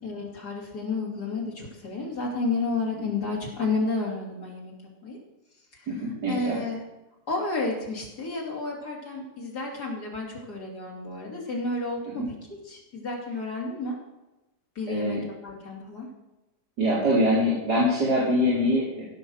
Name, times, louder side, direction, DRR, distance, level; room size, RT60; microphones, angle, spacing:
voice 1, 0.0-4.7 5.0-5.2 5.7-5.9 6.3-6.8 7.3-14.0 14.7-16.1, left 3 dB, 75° left, -3 dB, 3.4 m, -31 dB
voice 2, 5.9-6.6 12.2-12.3 14.9-15.2 16.8-19.0, equal, 90° right, -9 dB, 4.9 m, -24 dB
16.5 x 5.7 x 6.3 m, 0.98 s
omnidirectional pair, 1.7 m